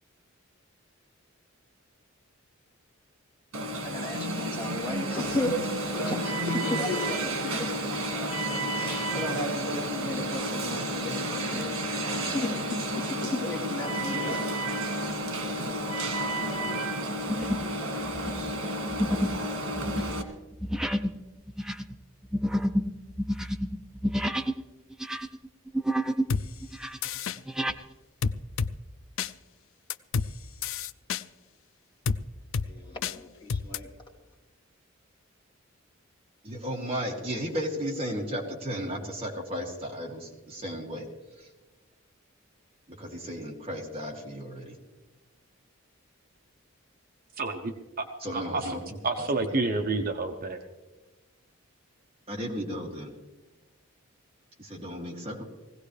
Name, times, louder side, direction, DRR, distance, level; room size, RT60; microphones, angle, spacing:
Alarm, 3.5-20.2, right 1 dB, 85° right, 2.0 m, -31 dB
voice 1, 3.8-7.7 8.7-14.7 32.6-33.9, left 2 dB, 20° left, -4 dB, 2.8 m, -35 dB
sound 1, 15.7-15.9 16.4-16.7 17.3-17.8 18.0-24.6 24.9-26.3 26.6-27.8, equal, 5° right, 0.5 m, -30 dB
sound 2, 26.3-26.4 27.0-27.4 28.2-28.7 29.2-29.3 29.9-30.3 30.6-31.2 32.0-32.2 32.5-32.7 33.0-33.1 33.5-33.8, left 5 dB, 65° left, 0.4 m, -28 dB
voice 2, 36.4-41.0 41.4-41.5 42.9-44.8 48.2-49.7 52.3-53.1 54.6-55.5, equal, 30° right, -2 dB, 2.5 m, -35 dB
voice 3, 47.4-47.7 48.0-48.1 48.3-48.4 49.0-50.6, right 3 dB, 45° right, 4 dB, 0.8 m, -28 dB
20.0 x 16.5 x 3.3 m, 1.1 s
head